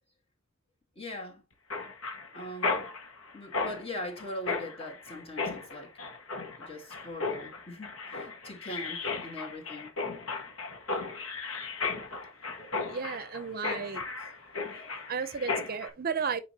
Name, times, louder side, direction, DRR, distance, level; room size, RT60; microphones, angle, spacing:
voice 1, 1.0-1.4 2.3-2.9 3.3-5.9 6.6-10.0, left 1 dB, 30° left, 2.3 m, -41 dB
Mechanisms, 1.7-15.9, left 4 dB, 75° left, 1.6 m, -35 dB
voice 2, 12.9-14.3 15.1-16.4, right 6 dB, 45° right, 0.6 m, -34 dB
8.7 x 5.2 x 2.8 m
head